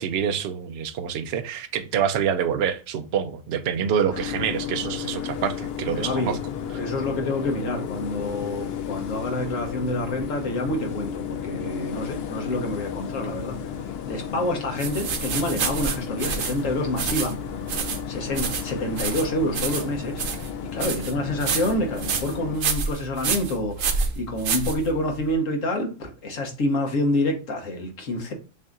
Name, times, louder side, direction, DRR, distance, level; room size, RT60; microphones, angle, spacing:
voice 1, 0.0-6.4, right 8 dB, 60° right, 9 dB, 0.8 m, -26 dB
sound 1, 4.1-22.6, left 8 dB, 60° left, 0.8 m, -33 dB
voice 2, 5.9-6.3 6.7-13.6 14.1-17.3 18.1-28.3, left 1 dB, 85° left, 3 dB, 1.5 m, -27 dB
sound 2, 14.8-25.3, right 5 dB, 90° right, 1.2 m, -29 dB
7.2 x 2.8 x 2.4 m, 0.36 s
omnidirectional pair, 1.3 m